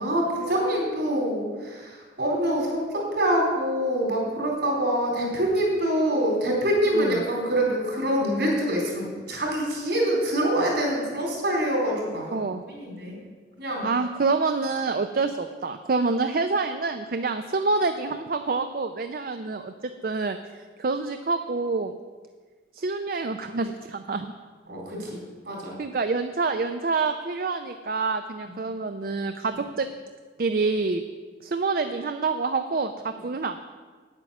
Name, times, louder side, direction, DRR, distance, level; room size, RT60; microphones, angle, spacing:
voice 1, 0.0-12.4 12.7-13.2 13.6-13.9 24.7-25.8 28.4-28.5, right 1 dB, 70° right, -1 dB, 4.0 m, -25 dB
voice 2, 12.3-12.6 13.8-19.7 20.0-21.9 22.7-24.3 25.8-29.9 30.4-31.0 31.4-33.6, right 4 dB, 50° right, 8 dB, 0.5 m, -27 dB
9.2 x 8.9 x 7.1 m, 1.5 s
head